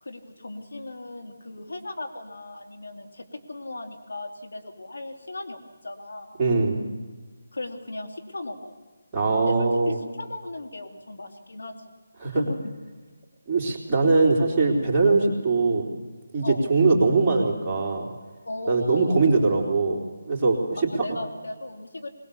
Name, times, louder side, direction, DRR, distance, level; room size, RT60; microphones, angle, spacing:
voice 1, 0.0-6.3 7.5-8.7 9.4-11.9 12.3-12.6 15.1-15.2 16.4-16.6 18.4-19.3 21.0-22.1, left 2 dB, 70° left, 4 dB, 2.6 m, -36 dB
voice 2, 6.4-6.8 9.1-10.0 12.2-12.4 13.5-15.8 16.3-18.1 18.7-20.0 20.2-20.8, right 3 dB, 10° right, -5 dB, 3.8 m, -21 dB
22.0 x 20.0 x 7.1 m, 1.4 s
figure-of-eight pair, 155°, 0 cm